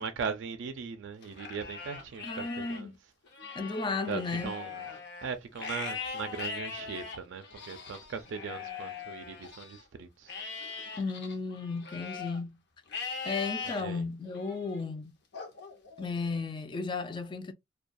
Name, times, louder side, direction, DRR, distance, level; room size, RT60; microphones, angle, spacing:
voice 1, 0.0-2.9 4.1-4.8 5.2-10.3 13.6-14.0, right 6 dB, 75° right, 0.4 m, -39 dB
Livestock farm animals working animals, 1.2-2.8 3.3-9.8 10.3-12.4 12.9-13.8 14.3-14.8 15.3-16.4, left 5 dB, 65° left, 0.7 m, -41 dB
voice 2, 2.2-3.0 3.5-4.5 11.0-12.6 13.2-15.1 16.0-17.5, left 4 dB, 25° left, 0.4 m, -34 dB
2.2 x 2.2 x 2.5 m
head